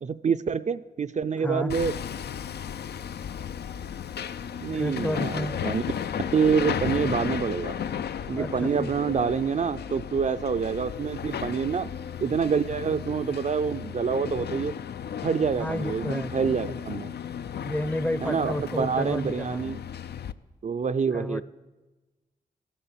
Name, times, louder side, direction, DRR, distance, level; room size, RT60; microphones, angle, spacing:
voice 1, 0.0-1.9 4.6-5.8 6.3-7.8 8.3-11.9 12.2-14.7 15.2-17.1 18.2-19.8 20.6-21.4, right 6 dB, 45° right, 10 dB, 0.4 m, -27 dB
voice 2, 1.4-1.7 4.7-5.6 8.3-8.9 15.6-16.3 16.6-16.8 17.6-19.7 21.1-21.4, left 1 dB, 10° left, 14 dB, 0.6 m, -31 dB
Hammer, 1.7-20.3, left 8 dB, 75° left, 0.5 m, -34 dB
14.5 x 11.5 x 7.3 m, 1.2 s
wide cardioid pair, 95°, 17 cm